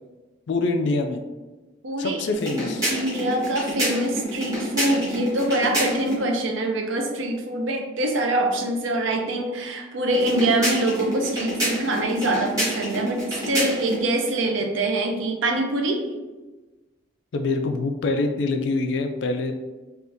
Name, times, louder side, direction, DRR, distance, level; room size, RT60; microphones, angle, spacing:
voice 1, 0.5-1.2 2.0-2.9 17.3-19.5, left 3 dB, 60° left, 5 dB, 0.3 m, -25 dB
voice 2, 1.8-2.2 2.9-16.0, right 1 dB, 70° right, 3 dB, 0.5 m, -24 dB
sound 1, 2.3-6.2 10.1-14.0, equal, 15° right, 1.1 m, -28 dB
3.6 x 2.4 x 2.6 m, 1.2 s
head